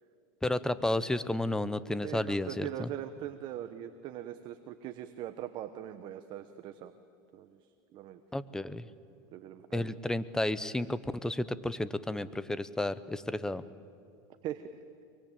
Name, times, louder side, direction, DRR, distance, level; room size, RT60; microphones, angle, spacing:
voice 1, 0.4-2.9 8.3-8.9 9.7-13.6, left 1 dB, 5° left, 15 dB, 0.8 m, -32 dB
voice 2, 2.0-6.9 7.3-8.2 9.3-10.0 14.4-14.7, right 11 dB, 45° right, 9 dB, 1.1 m, -41 dB
24.0 x 23.5 x 9.0 m, 2.6 s
supercardioid pair, 125°, 11 cm